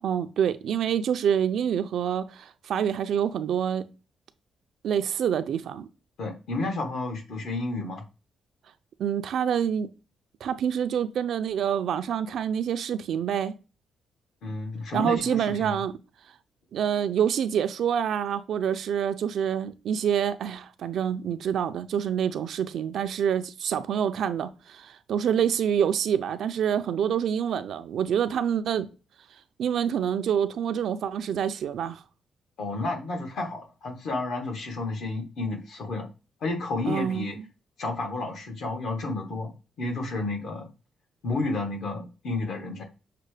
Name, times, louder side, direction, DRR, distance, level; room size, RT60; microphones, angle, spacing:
voice 1, 0.0-3.8 4.8-5.9 9.0-9.9 10.4-13.5 14.9-15.9 16.7-28.9 29.6-32.0 36.9-37.3, right 8 dB, 70° right, 0.4 m, -27 dB
voice 2, 6.2-8.0 14.4-15.8 32.6-36.1 36.4-37.4 37.8-39.5 39.8-40.7 41.2-42.8, left 2 dB, 65° left, 1.2 m, -31 dB
6.6 x 2.2 x 3.2 m
cardioid pair, 130°, 0 cm